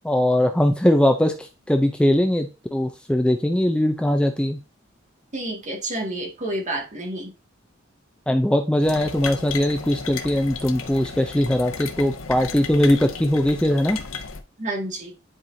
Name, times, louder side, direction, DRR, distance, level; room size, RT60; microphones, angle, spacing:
voice 1, 0.0-4.6 8.3-14.0, left 1 dB, 5° left, 5 dB, 0.5 m, -20 dB
voice 2, 5.3-7.3 14.6-15.1, right 1 dB, 40° right, 1 dB, 2.0 m, -29 dB
sound 1, 8.8-14.4, left 5 dB, 90° left, 0.9 m, -34 dB
10.0 x 4.7 x 2.7 m, 0.30 s
head